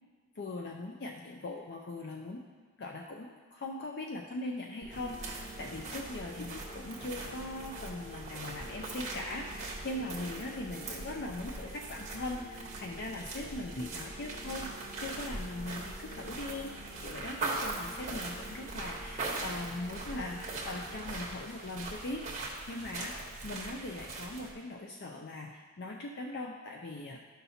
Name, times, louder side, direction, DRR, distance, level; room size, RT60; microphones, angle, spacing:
voice 1, 0.4-2.4 2.8-14.7 15.0-16.7 17.0-23.2 23.4-27.2, left 2 dB, 50° left, 1 dB, 0.5 m, -40 dB
sound 1, 4.8-21.2, right 1 dB, 25° left, 1.0 m, -48 dB
sound 2, 4.9-24.5, right 3 dB, 30° right, 1.1 m, -41 dB
12.5 x 5.6 x 2.8 m, 1.5 s
head